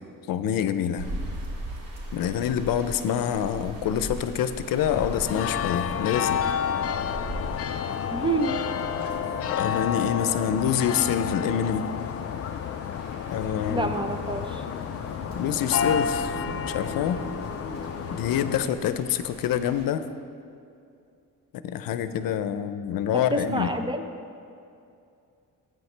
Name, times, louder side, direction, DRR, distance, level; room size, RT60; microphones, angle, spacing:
voice 1, 0.3-1.1 2.1-6.4 9.5-11.9 13.3-13.9 15.4-16.4 16.7-17.2 18.1-20.1 21.6-23.7, left 9 dB, 90° left, 11 dB, 0.6 m, -26 dB
sound 1, 1.0-19.8, right 1 dB, 80° right, 2.8 m, -40 dB
sound 2, 4.9-18.7, left 7 dB, 45° left, 0.4 m, -30 dB
voice 2, 8.1-8.6 13.7-14.6 23.1-24.0, right 2 dB, 15° right, 6 dB, 0.6 m, -28 dB
15.0 x 9.0 x 3.3 m, 2.5 s
cardioid pair, 140°, 33 cm